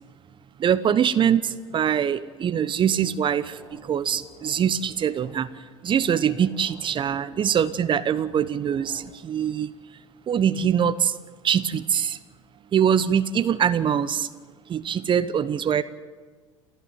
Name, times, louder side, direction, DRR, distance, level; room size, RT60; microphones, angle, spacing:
voice 1, 0.6-5.5 5.8-9.7 10.3-11.1 11.4-12.2 12.7-14.3 14.7-15.8, right 8 dB, 30° right, 14 dB, 1.0 m, -23 dB
sound 1, 3.0-5.3 5.9-9.0, right 2 dB, 80° right, 7.5 m, -50 dB
29.0 x 13.5 x 9.4 m, 1.5 s
figure-of-eight pair, 75°, 17 cm